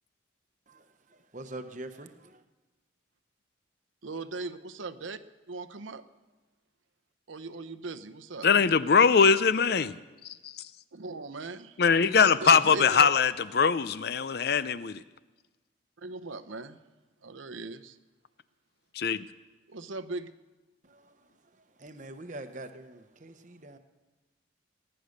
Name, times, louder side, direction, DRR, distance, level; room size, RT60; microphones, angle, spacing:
voice 1, 0.7-2.1 20.8-21.2 21.8-23.8, right 2 dB, 40° right, 0.9 m, -44 dB
voice 2, 4.0-5.2 5.5-6.0 7.3-8.5 10.9-11.8 12.2-13.1 16.0-16.8 17.2-18.0 19.7-20.3, right 3 dB, 80° right, 0.9 m, -39 dB
voice 3, 8.4-10.0 10.4-10.5 11.8-15.0 19.0-19.3, left 6 dB, 55° left, 0.5 m, -22 dB
19.5 x 10.0 x 6.6 m
head